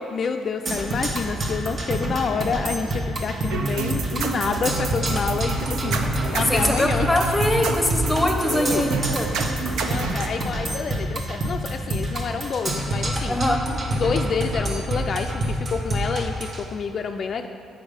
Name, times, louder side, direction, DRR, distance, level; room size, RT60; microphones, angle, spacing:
voice 1, 0.1-6.1 6.3-7.1 8.4-8.9 9.8-13.4 13.9-17.5, left 5 dB, 50° left, 5 dB, 0.3 m, -28 dB
Percussion, 0.7-16.6, right 1 dB, 45° right, 1.1 m, -27 dB
sound 1, 3.5-10.3, right 4 dB, 80° right, 0.5 m, -29 dB
voice 2, 6.5-9.3 13.3-13.6, left 1 dB, 10° left, 3 dB, 0.9 m, -22 dB
7.1 x 5.3 x 5.0 m, 2.3 s
cardioid pair, 90°, 0 cm